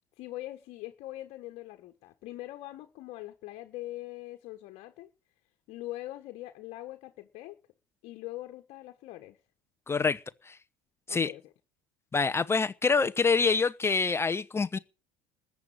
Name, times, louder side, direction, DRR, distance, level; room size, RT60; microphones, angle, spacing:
voice 1, 0.2-5.1 5.7-7.6 8.0-9.4 11.1-11.5, left 16 dB, 65° left, 1.4 m, -42 dB
voice 2, 9.9-10.6 11.1-11.3 12.1-14.8, left 4 dB, 20° left, 0.9 m, -26 dB
14.5 x 8.3 x 8.7 m
supercardioid pair, 85°, 12 cm